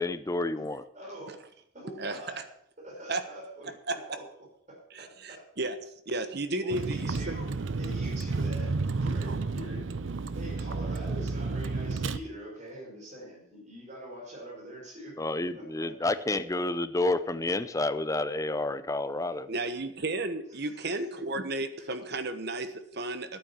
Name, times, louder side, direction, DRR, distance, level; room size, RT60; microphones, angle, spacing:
voice 1, 0.0-0.8 15.2-19.5, left 2 dB, 15° left, 13 dB, 0.5 m, -29 dB
voice 2, 0.9-2.5 2.8-5.5 6.6-9.9 10.3-15.2 15.5-15.9 20.5-20.9 21.9-22.0, right 1 dB, 35° right, -1 dB, 5.4 m, -44 dB
voice 3, 2.0-2.4 3.1-3.2 3.9-4.0 4.9-5.8 6.1-7.4 19.5-23.4, right 2 dB, 55° right, 10 dB, 1.2 m, -33 dB
Vehicle, 6.7-12.2, right 3 dB, 70° right, 0.6 m, -31 dB
11.0 x 9.1 x 7.1 m, 0.66 s
head